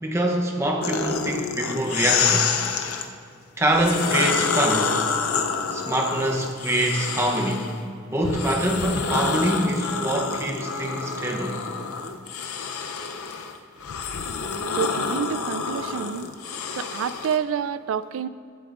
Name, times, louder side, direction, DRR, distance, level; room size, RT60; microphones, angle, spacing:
voice 1, 0.0-2.4 3.6-5.0 5.7-7.7 8.1-11.6, right 1 dB, 15° right, 1 dB, 0.7 m, -24 dB
sound 1, 0.8-3.1 3.7-7.7 8.2-17.4, left 5 dB, 85° left, 0.6 m, -28 dB
voice 2, 14.7-16.3 16.7-18.3, right 7 dB, 65° right, 15 dB, 0.3 m, -28 dB
15.5 x 8.6 x 2.5 m, 2.2 s
head